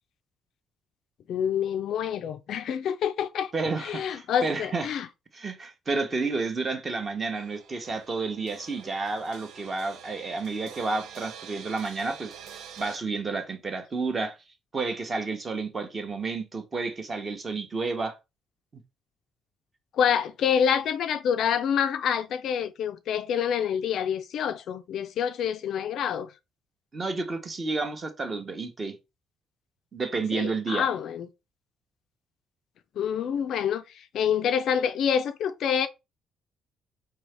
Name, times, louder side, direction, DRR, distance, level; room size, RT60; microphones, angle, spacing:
voice 1, 1.3-3.5 3.8-5.1 19.9-26.3 30.3-31.3 33.0-35.9, left 8 dB, 55° left, 0.3 m, -27 dB
voice 2, 3.5-4.9 5.3-12.3 12.8-14.4 14.7-18.1 26.9-29.0 29.9-30.9, right 3 dB, 25° right, 0.8 m, -30 dB
sound 1, 7.3-13.0, right 8 dB, 75° right, 0.5 m, -46 dB
4.7 x 2.8 x 3.2 m
cardioid pair, 160°, 0 cm